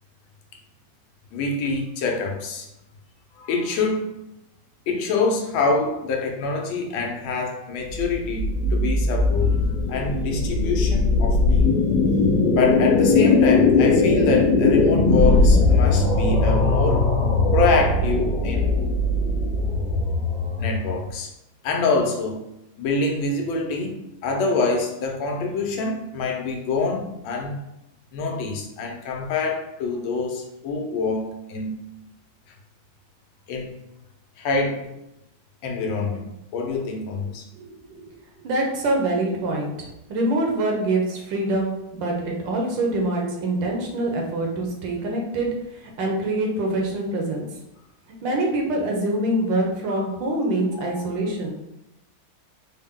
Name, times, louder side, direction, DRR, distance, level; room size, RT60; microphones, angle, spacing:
voice 1, 1.3-2.7 3.4-4.1 4.9-9.6 9.9-11.7 12.5-17.0 17.5-18.7 20.6-21.3 21.6-22.4 22.8-27.7 28.1-31.8 33.5-33.7 34.4-34.9 35.6-37.4 49.9-50.1 50.7-51.0, left 3 dB, 85° left, 1 dB, 1.5 m, -25 dB
sound 1, 7.9-21.1, left 3 dB, 60° left, 1.2 m, -19 dB
voice 2, 37.6-38.0 38.4-47.4 48.2-51.5, right 1 dB, 70° right, 0 dB, 1.4 m, -25 dB
4.3 x 2.1 x 3.6 m, 0.88 s
omnidirectional pair, 2.1 m